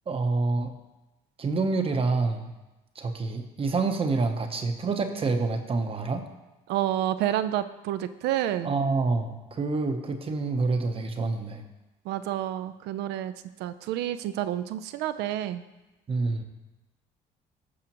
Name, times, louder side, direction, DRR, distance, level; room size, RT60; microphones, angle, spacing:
voice 1, 0.1-0.7 1.4-2.5 3.0-6.2 8.6-11.6 16.1-16.4, right 3 dB, 35° right, 6 dB, 0.8 m, -27 dB
voice 2, 6.7-8.7 12.1-13.3 13.6-15.6, right 12 dB, 80° right, 12 dB, 0.5 m, -29 dB
15.0 x 5.0 x 2.9 m, 1.0 s
cardioid pair, 110°, 17 cm